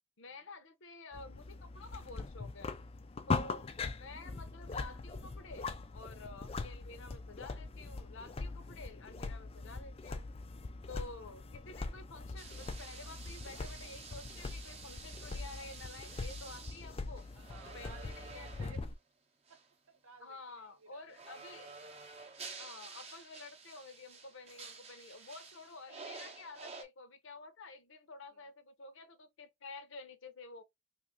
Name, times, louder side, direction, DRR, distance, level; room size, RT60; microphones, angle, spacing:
voice 1, 0.2-2.7 3.3-10.3 10.9-17.3 17.7-18.5 20.2-21.8 22.6-30.6, left 3 dB, 65° left, 0.7 m, -51 dB
sound 1, 1.1-18.9, left 3 dB, 25° left, 0.3 m, -42 dB
sound 2, 12.4-18.9 19.5-19.7 21.1-26.8, right 4 dB, 30° right, 0.7 m, -51 dB
voice 2, 17.3-18.9 19.5-19.6 19.9-21.2 28.3-28.4, right 5 dB, 85° right, 0.9 m, -56 dB
3.0 x 2.6 x 3.7 m
head